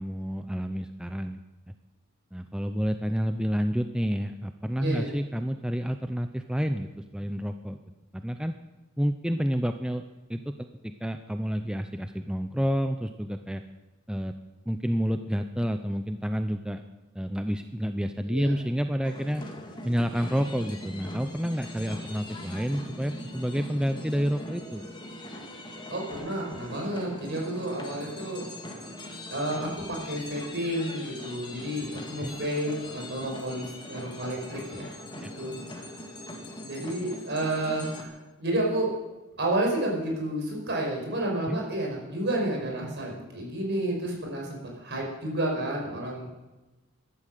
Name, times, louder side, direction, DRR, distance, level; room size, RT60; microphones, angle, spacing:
voice 1, 0.0-1.4 2.3-7.8 8.1-8.5 9.0-10.0 10.3-10.7 11.0-13.6 14.1-14.3 14.7-16.8 17.1-19.4 19.8-24.8 32.2-32.4 35.2-35.3 41.5-41.6, equal, 5° right, 7 dB, 0.5 m, -29 dB
sound 1, 19.0-38.0, left 1 dB, 20° left, 1.9 m, -41 dB
voice 2, 25.9-28.4 29.3-35.9 36.6-38.9 39.4-46.3, right 1 dB, 55° right, 0 dB, 5.5 m, -31 dB
15.0 x 12.5 x 6.7 m, 1.1 s
head